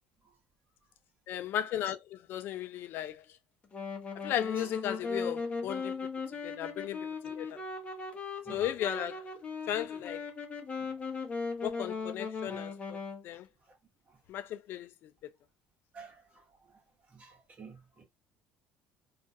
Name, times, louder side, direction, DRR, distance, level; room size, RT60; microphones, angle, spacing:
voice 1, 1.3-3.2 4.2-6.0 6.4-7.6 8.5-9.2 9.7-10.3 11.6-13.0 13.2-13.5 14.3-15.3, left 11 dB, 60° left, 0.4 m, -36 dB
Wind instrument woodwind instrument, 3.7-13.2, left 4 dB, 30° left, 0.7 m, -38 dB
voice 2, 13.3-13.8 14.1-14.2 15.9-18.0, right 5 dB, 35° right, 1.0 m, -53 dB
2.4 x 2.1 x 2.6 m
supercardioid pair, 95°, 4 cm